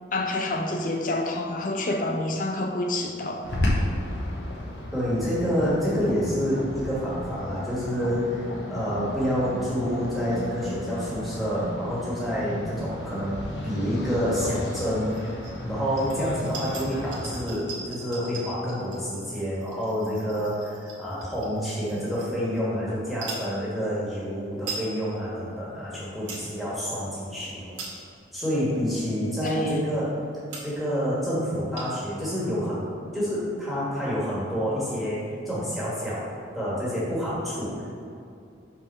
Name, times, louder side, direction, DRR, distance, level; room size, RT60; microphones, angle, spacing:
voice 1, 0.1-3.5 29.4-29.7, left 2 dB, 45° left, 4 dB, 0.5 m, -28 dB
sound 1, 3.4-17.4, left 1 dB, 70° left, 1.0 m, -33 dB
voice 2, 4.9-27.7 28.3-30.1 30.6-32.8 33.1-37.9, equal, ahead, -9 dB, 1.4 m, -28 dB
sound 2, 15.1-15.6 15.9-22.6 23.1-23.5 24.1-24.2 24.4-24.9 25.3-25.4 25.9-26.5 27.0-27.1 27.6-28.2 28.8-28.9 29.4-29.8 30.2-30.3 30.5-30.9 31.2-31.3 31.5-32.1, right 4 dB, 80° right, 1.5 m, -40 dB
5.7 x 3.6 x 5.5 m, 2.5 s
head